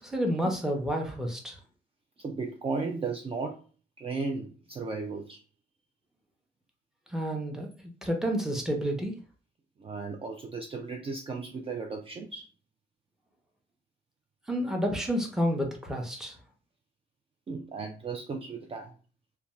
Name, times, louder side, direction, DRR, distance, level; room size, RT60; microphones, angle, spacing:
voice 1, 0.0-1.6 7.1-9.1 14.5-16.4, equal, ahead, 1 dB, 0.8 m, -30 dB
voice 2, 2.2-3.7 4.0-5.4 9.8-12.5 17.5-18.9, right 4 dB, 30° right, 3 dB, 0.4 m, -35 dB
2.5 x 2.2 x 3.1 m, 0.37 s
cardioid pair, 90°, 20 cm